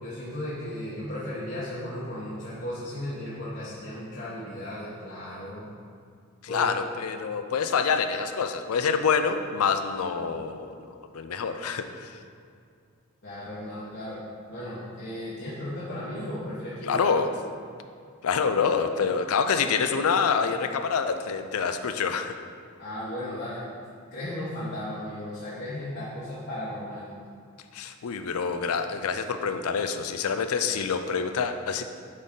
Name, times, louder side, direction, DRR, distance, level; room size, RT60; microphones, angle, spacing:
voice 1, 0.0-5.7 6.5-6.7 13.2-14.2 14.5-17.1 22.8-23.6 24.1-27.1, left 1 dB, 50° left, -10 dB, 1.2 m, -35 dB
voice 2, 6.4-12.2 16.9-17.3 18.2-22.4 27.7-31.8, left 6 dB, 85° left, 8 dB, 0.5 m, -26 dB
8.5 x 4.1 x 3.8 m, 2.3 s
head